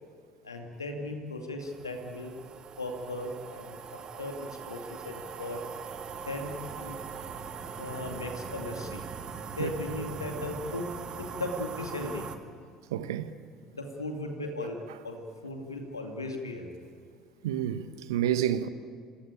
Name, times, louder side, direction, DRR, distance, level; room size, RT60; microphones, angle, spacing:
voice 1, 0.4-2.3 2.8-4.4 4.7-5.6 6.3-7.0 7.7-9.0 9.6-10.8 11.2-12.3 13.7-14.8 15.0-16.7, left 2 dB, 85° left, 2.4 m, -37 dB
sound 1, 1.6-12.4, right 6 dB, 40° right, 2.0 m, -41 dB
voice 2, 12.9-13.3 17.4-18.7, right 11 dB, 75° right, 1.1 m, -29 dB
28.0 x 18.5 x 9.0 m
figure-of-eight pair, 55°, 2 cm